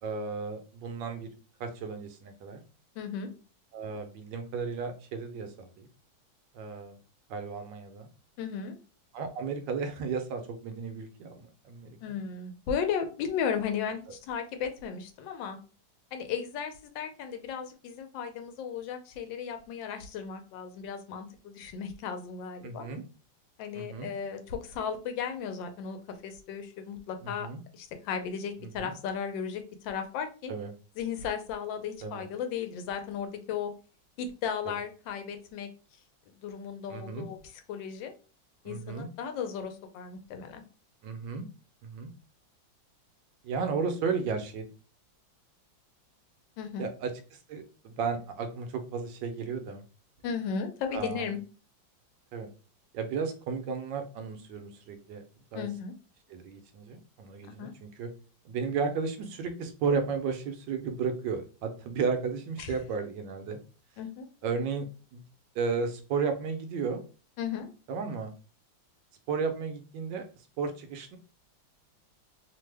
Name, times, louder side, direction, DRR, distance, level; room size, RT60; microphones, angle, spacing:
voice 1, 0.0-1.3 1.6-2.6 3.7-5.9 6.5-7.0 7.3-8.1 9.1-12.1 22.6-23.0 23.7-24.1 27.2-27.6 28.6-28.9 30.5-30.7 32.0-32.3 34.7-34.8 36.9-37.3 38.7-39.1 41.0-41.4 41.8-42.1 43.4-44.7 46.8-49.8 50.9-51.3 52.3-52.5 52.9-55.2 55.5-55.7 56.3-58.1 58.4-63.6 64.4-64.9 65.1-65.2 65.5-67.0 67.9-68.3 69.3-70.2 70.6-71.2, right 5 dB, 75° right, 6 dB, 1.2 m, -34 dB
voice 2, 3.0-3.3 8.4-8.8 12.0-15.6 16.1-22.9 23.6-26.0 26.2-27.5 27.7-30.5 31.0-33.7 34.2-35.7 36.4-37.4 37.7-38.1 38.6-40.6 46.6-46.9 50.2-51.4 55.5-55.9 57.6-57.7 62.6-62.8 64.0-64.3 67.4-67.7, left 7 dB, 80° left, 6 dB, 1.2 m, -35 dB
3.2 x 2.1 x 3.2 m, 0.36 s
omnidirectional pair, 2.1 m